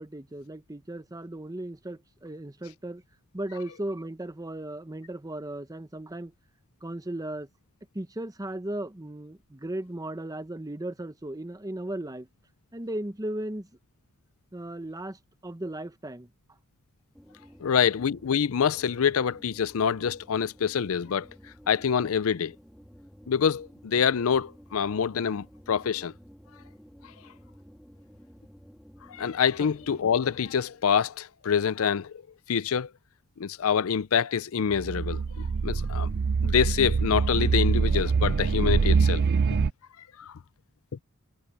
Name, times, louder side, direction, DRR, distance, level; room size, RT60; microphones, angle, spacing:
voice 1, 0.0-3.0 3.3-6.3 6.8-7.5 7.9-12.3 12.7-13.7 14.5-16.3 29.6-29.7, right 1 dB, 15° right, 0.9 m, -36 dB
sound 1, 17.1-30.8, equal, ahead, 2.2 m, -52 dB
voice 2, 17.6-21.3 21.7-22.5 23.3-26.1 29.1-32.2 32.5-32.9 33.4-36.1 36.4-39.2 40.2-40.4, left 7 dB, 70° left, 0.5 m, -26 dB
sound 2, 34.7-39.7, right 5 dB, 45° right, 0.4 m, -24 dB
head